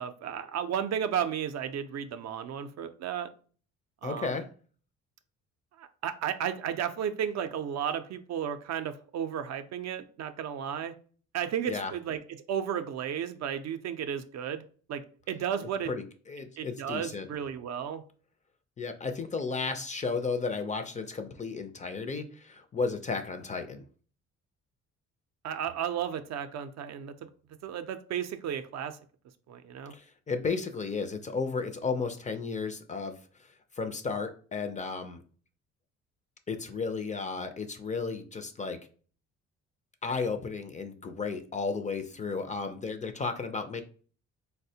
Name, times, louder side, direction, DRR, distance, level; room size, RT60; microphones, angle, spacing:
voice 1, 0.0-3.3 4.0-4.4 5.8-10.9 11.3-12.2 12.5-14.6 14.9-15.0 15.3-15.9 16.6-18.0 25.4-27.1 27.6-29.0 29.5-29.9, right 8 dB, 60° right, 9 dB, 0.4 m, -33 dB
voice 2, 4.0-4.5 11.7-11.9 15.9-17.3 18.8-23.8 29.9-33.5 33.7-35.2 36.5-38.8 40.0-43.8, left 4 dB, 25° left, 7 dB, 0.4 m, -33 dB
4.0 x 2.1 x 2.7 m, 0.42 s
cardioid pair, 90°, 30 cm